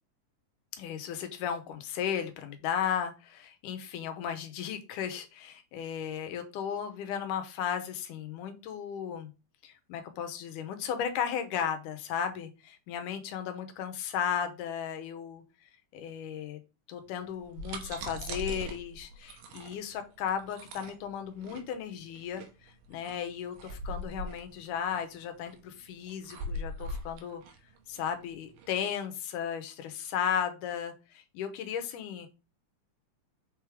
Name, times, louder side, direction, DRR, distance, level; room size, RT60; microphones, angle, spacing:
voice 1, 0.7-9.3 9.6-16.6 16.9-27.4 27.9-32.3, left 8 dB, 85° left, 7 dB, 2.4 m, -35 dB
sound 1, 17.3-28.7, equal, 85° right, 2.4 m, -41 dB
6.4 x 4.7 x 3.6 m, 0.30 s
omnidirectional pair, 3.6 m